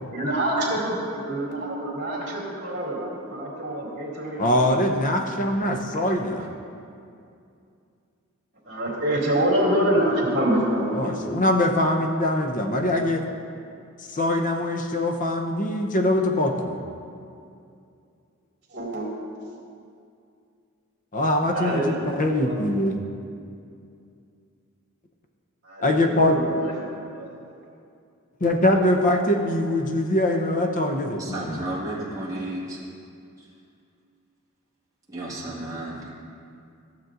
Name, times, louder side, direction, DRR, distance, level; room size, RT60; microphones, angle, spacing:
voice 1, 0.1-4.9 5.8-6.4 8.6-11.3 18.7-19.1 21.5-22.6 25.6-26.7 27.1-27.5, right 1 dB, 55° right, -4 dB, 2.4 m, -26 dB
voice 2, 4.4-6.5 10.9-13.2 14.1-16.8 21.1-21.9 22.2-23.0 25.8-26.4 28.4-31.6, left 1 dB, 40° left, 3 dB, 0.7 m, -23 dB
voice 3, 31.2-32.8 33.4-33.5 35.1-36.1, right 1 dB, 15° right, -7 dB, 1.7 m, -33 dB
15.0 x 7.4 x 2.5 m, 2.5 s
head